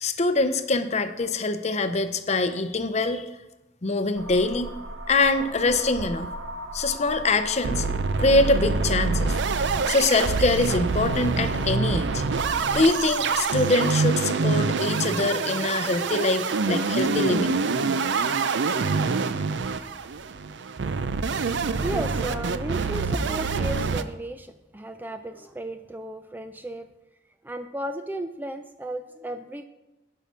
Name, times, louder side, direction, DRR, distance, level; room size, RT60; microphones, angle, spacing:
voice 1, 0.0-3.3 3.8-4.7 5.1-6.3 6.7-7.9 8.2-9.3 9.9-12.2 12.7-17.6, left 2 dB, 35° left, 10 dB, 0.6 m, -24 dB
sound 1, 4.1-13.4, right 1 dB, 90° right, 1.1 m, -37 dB
sound 2, 5.6-6.5 6.8-6.9 7.1-7.2 7.6-24.0, right 4 dB, 65° right, 0.5 m, -26 dB
voice 2, 21.8-26.9 27.4-29.6, right 1 dB, 10° right, 9 dB, 0.3 m, -34 dB
11.0 x 5.7 x 5.6 m, 1.0 s
head